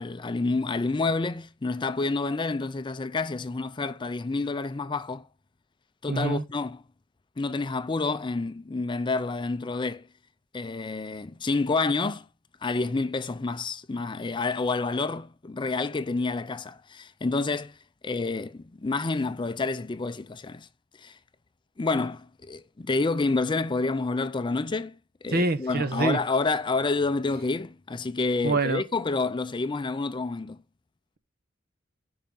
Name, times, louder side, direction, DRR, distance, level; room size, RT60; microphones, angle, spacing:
voice 1, 0.0-5.3 6.0-6.8 7.4-10.1 10.5-12.3 12.6-17.8 18.0-20.7 21.0-21.2 21.8-25.0 25.2-30.6, left 3 dB, 25° left, 0.4 m, -28 dB
voice 2, 6.1-6.4 25.3-26.2 28.4-28.8, right 3 dB, 50° right, 1.1 m, -25 dB
9.0 x 5.6 x 7.7 m
head